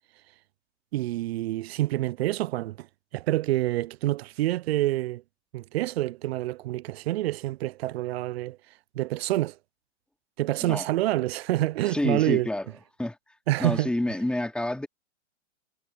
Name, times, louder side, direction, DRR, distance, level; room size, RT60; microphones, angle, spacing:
voice 1, 0.9-2.9 3.1-5.2 5.5-8.6 8.9-9.6 10.4-12.5 13.5-13.9, right 16 dB, 60° right, 0.5 m, -27 dB
voice 2, 11.9-12.7 13.0-13.2 13.6-14.9, left 1 dB, 5° left, 3.0 m, -28 dB
hypercardioid pair, 120°, 36 cm